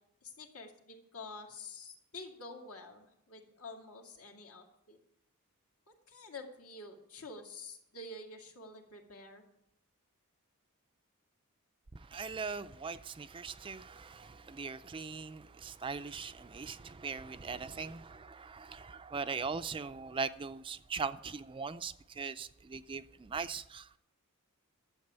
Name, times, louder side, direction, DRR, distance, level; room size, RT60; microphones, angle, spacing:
voice 1, 0.2-5.0 5.9-9.4, left 2 dB, 70° left, 2.2 m, -48 dB
voice 2, 11.9-24.0, right 5 dB, 25° right, 0.4 m, -40 dB
12.0 x 7.6 x 8.0 m
head